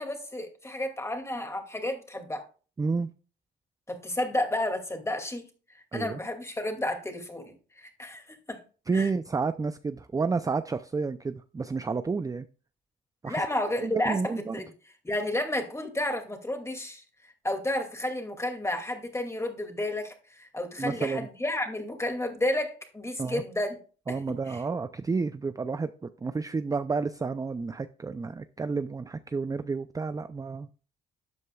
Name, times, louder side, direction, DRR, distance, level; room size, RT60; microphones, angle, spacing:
voice 1, 0.0-2.4 3.9-5.4 5.7-8.6 8.9-9.1 13.3-14.7 15.0-23.8 24.1-24.6, left 1 dB, 15° left, 2.3 m, -32 dB
voice 2, 2.8-3.1 5.9-6.2 8.9-12.5 13.2-13.4 13.8-14.6 20.8-21.3 23.2-23.4 24.1-30.7, right 4 dB, 15° right, 0.4 m, -30 dB
12.5 x 7.8 x 2.3 m
cardioid pair, 90°, 20 cm